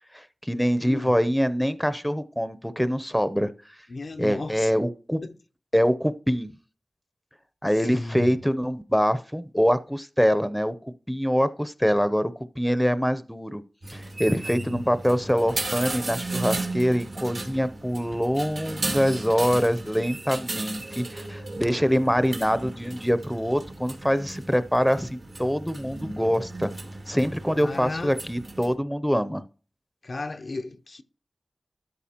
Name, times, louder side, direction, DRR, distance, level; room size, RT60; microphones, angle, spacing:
voice 1, 0.1-3.5 4.2-5.2 5.7-6.5 7.6-13.6 13.9-26.7 27.1-29.4, equal, 5° left, 0.6 m, -24 dB
voice 2, 0.8-1.1 3.9-4.7 5.2-5.3 7.9-8.4 14.3-14.8 27.5-28.1 30.0-31.0, left 2 dB, 65° left, 0.6 m, -34 dB
sound 1, 13.8-28.7, right 2 dB, 80° right, 1.8 m, -35 dB
13.0 x 5.2 x 2.9 m
cardioid pair, 45°, 0 cm